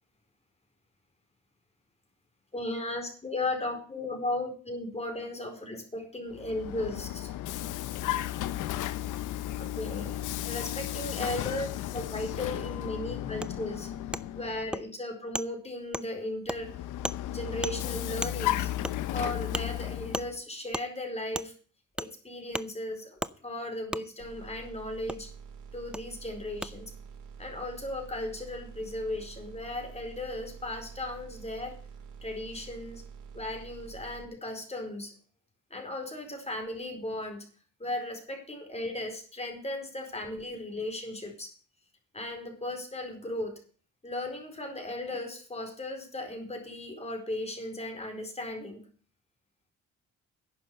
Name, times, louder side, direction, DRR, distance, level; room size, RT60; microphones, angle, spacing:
voice 1, 2.5-7.3 9.6-13.9 14.3-16.7 17.3-18.7 19.1-21.5 22.0-25.3 25.7-26.9 27.4-31.8 32.2-33.0 33.3-35.1 35.7-37.4 37.8-41.5 42.1-43.6 44.0-48.9, left 1 dB, 20° left, 4 dB, 4.5 m, -36 dB
Vehicle, 6.3-14.8 16.5-20.4, left 13 dB, 85° left, 1.0 m, -34 dB
Wood, 13.4-13.5 14.1-14.2 14.7-14.8 15.3-15.5 15.9-16.1 16.5-16.6 17.0-17.2 17.6-17.7 18.2-18.3 18.8-18.9 19.5-19.6 20.1-20.3 20.7-20.9 21.3-21.5 22.0-22.1 22.5-22.7 23.2-23.3 23.9-24.0 25.1-25.2 25.9-26.0 26.6-26.7, right 1 dB, 5° right, 0.6 m, -33 dB
sound 1, 24.2-34.2, right 6 dB, 90° right, 3.0 m, -47 dB
11.0 x 9.3 x 6.8 m, 0.42 s
cardioid pair, 90°, 30 cm